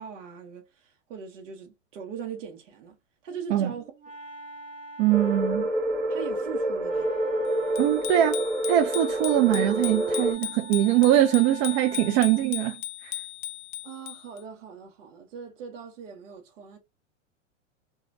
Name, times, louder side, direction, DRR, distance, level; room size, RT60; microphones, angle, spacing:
voice 1, 0.0-3.0 3.2-3.9 6.1-7.2 13.8-16.8, right 7 dB, 75° right, 0.9 m, -40 dB
Wind instrument woodwind instrument, 3.5-12.6, right 2 dB, 20° right, 0.9 m, -45 dB
voice 2, 5.0-5.7 7.8-8.4 8.7-13.1, right 12 dB, 50° right, 0.5 m, -22 dB
sound 1, 5.1-10.3, right 1 dB, 5° right, 1.7 m, -28 dB
Bicycle bell, 7.7-14.4, left 12 dB, 35° left, 0.4 m, -37 dB
3.0 x 2.3 x 2.5 m
hypercardioid pair, 115°, 37 cm